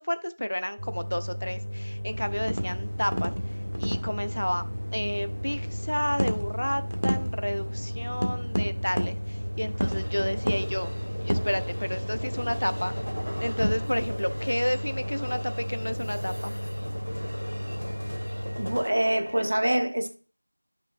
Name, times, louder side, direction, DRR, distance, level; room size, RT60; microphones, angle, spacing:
voice 1, 0.0-3.3 3.8-4.6 4.9-10.9 11.2-12.9 13.4-16.6, equal, 45° left, 0.3 m, -31 dB
sound 1, 0.8-18.8, equal, 65° left, 0.8 m, -35 dB
sound 2, 2.1-14.2, equal, 55° right, 1.0 m, -33 dB
sound 3, 9.8-19.5, equal, 75° right, 1.3 m, -38 dB
voice 2, 18.6-20.2, right 1 dB, 25° right, 0.4 m, -25 dB
10.5 x 6.0 x 2.4 m
figure-of-eight pair, 175°, 0 cm